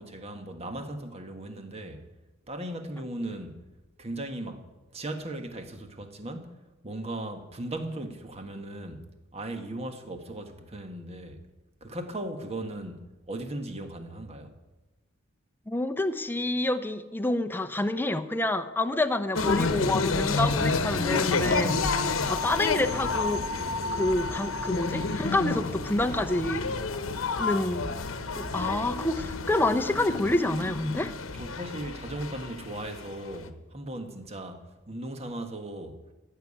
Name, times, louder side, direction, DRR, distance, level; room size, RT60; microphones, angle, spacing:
voice 1, 0.0-2.1 2.5-3.7 4.0-11.4 11.8-14.5 31.3-36.0, right 1 dB, 30° right, 1.4 m, -37 dB
voice 2, 15.7-23.4 23.9-26.7 27.4-28.0 28.4-31.1, left 2 dB, 10° left, 0.7 m, -28 dB
sound 1, 19.3-33.4, left 4 dB, 75° left, 1.0 m, -30 dB
15.0 x 6.8 x 9.9 m
head